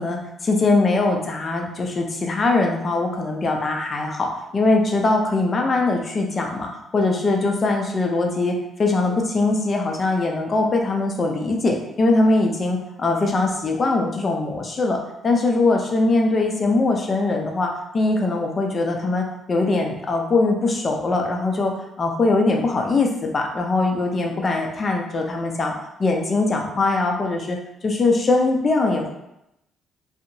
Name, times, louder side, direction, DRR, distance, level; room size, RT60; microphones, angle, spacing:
voice 1, 0.0-15.0 15.2-25.7 26.0-27.6 27.8-29.1, left 2 dB, 40° left, 1 dB, 0.5 m, -21 dB
2.8 x 2.0 x 2.6 m, 0.83 s
cardioid pair, 90°, 0 cm